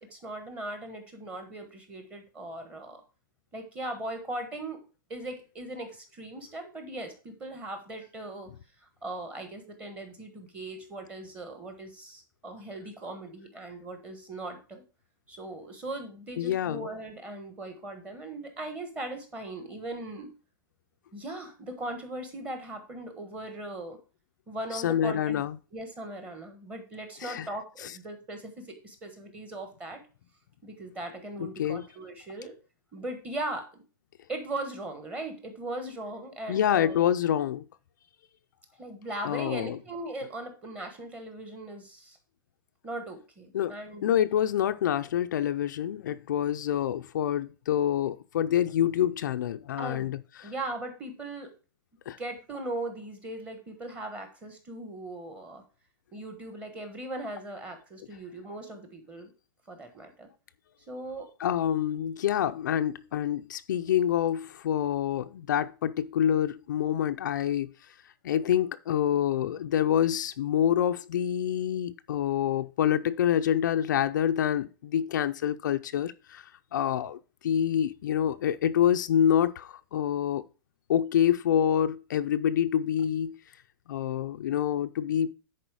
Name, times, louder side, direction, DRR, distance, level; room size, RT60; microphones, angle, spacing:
voice 1, 0.1-3.0 3.5-4.8 5.1-8.5 8.8-14.8 15.3-20.3 21.1-24.0 24.5-25.4 25.7-30.0 30.6-32.5 32.9-33.8 34.3-37.1 38.8-42.2 42.8-44.2 49.8-50.1 50.4-51.5 52.2-55.6 56.1-59.3 59.7-60.3 60.9-61.3, right 2 dB, 10° right, 1.2 m, -39 dB
voice 2, 16.4-16.9 24.7-25.6 27.2-27.5 27.8-27.9 31.4-31.8 36.5-37.6 39.2-39.8 43.5-43.8 44.0-50.5 52.1-52.2 61.4-67.7 68.2-80.4 80.9-83.4 83.9-85.3, left 10 dB, 60° left, 0.5 m, -27 dB
10.0 x 4.4 x 4.8 m
hypercardioid pair, 175°, 12 cm